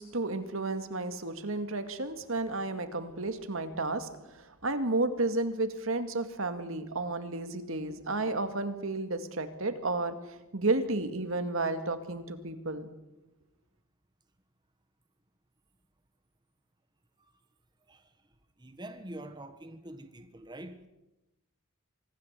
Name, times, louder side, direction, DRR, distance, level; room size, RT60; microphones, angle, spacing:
voice 1, 0.0-10.2 10.5-12.9, right 2 dB, 65° right, 2.1 m, -32 dB
voice 2, 18.6-20.9, right 1 dB, 20° right, 1.3 m, -45 dB
24.5 x 14.0 x 8.2 m
head